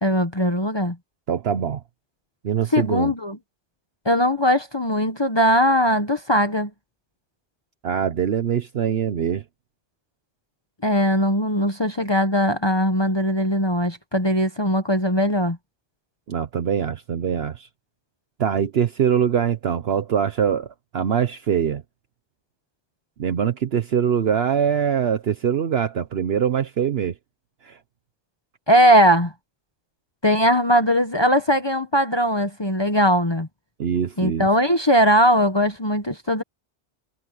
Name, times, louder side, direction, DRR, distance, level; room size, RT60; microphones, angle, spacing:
voice 1, 0.0-1.0 2.7-3.4 4.0-6.7 10.8-15.6 28.7-29.3 30.2-33.5 34.2-36.4, equal, 25° left, 1.2 m, -20 dB
voice 2, 1.3-1.8 2.4-3.1 7.8-9.4 16.3-17.7 18.4-21.8 23.2-27.1 27.6-27.8 33.8-34.5, right 8 dB, 65° right, 1.0 m, -23 dB
omnidirectional pair, 1.2 m